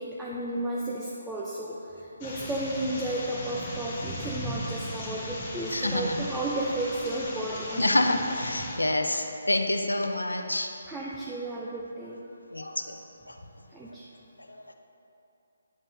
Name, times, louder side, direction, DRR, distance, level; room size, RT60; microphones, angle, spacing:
voice 1, 0.0-8.2 9.1-9.2 10.9-12.2 13.7-14.0, right 1 dB, 5° right, -6 dB, 0.4 m, -33 dB
sound 1, 2.2-8.8, left 1 dB, 30° left, 1.2 m, -37 dB
voice 2, 5.7-6.2 7.8-10.7 12.5-13.0 13.3-13.4 14.5-14.6, left 1 dB, 75° left, 5 dB, 0.5 m, -27 dB
9.2 x 5.3 x 2.6 m, 2.8 s
figure-of-eight pair, 140°, 0 cm